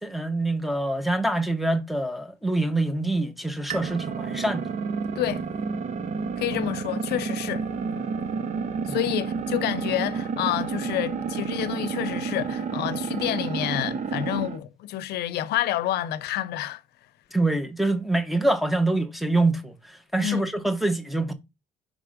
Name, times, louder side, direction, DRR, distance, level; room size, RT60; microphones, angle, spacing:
voice 1, 0.0-4.7 8.9-9.0 17.3-19.8 20.1-21.3, right 2 dB, ahead, 1.0 m, -25 dB
sound 1, 3.7-14.6, right 5 dB, 45° right, 0.9 m, -30 dB
voice 2, 6.4-7.7 8.9-16.8 20.2-20.4, left 13 dB, 75° left, 0.7 m, -28 dB
5.3 x 3.5 x 5.0 m
cardioid pair, 110°, 17 cm